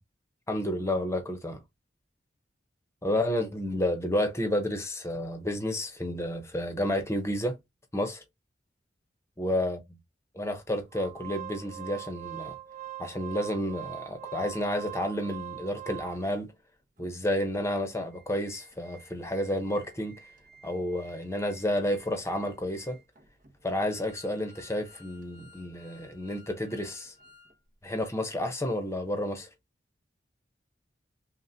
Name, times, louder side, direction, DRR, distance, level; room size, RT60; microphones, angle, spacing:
voice 1, 0.5-1.6 3.0-7.6 7.9-8.2 9.4-9.8 10.3-12.5 13.0-16.5 17.0-20.3 20.6-23.0 23.6-27.1 27.8-29.5, left 1 dB, 15° left, 0.9 m, -30 dB
Organ, 10.9-16.5 17.0-17.1 17.3-17.5 17.9-27.5 27.9-28.0, right 12 dB, 45° right, 0.9 m, -46 dB
5.6 x 2.4 x 2.8 m
head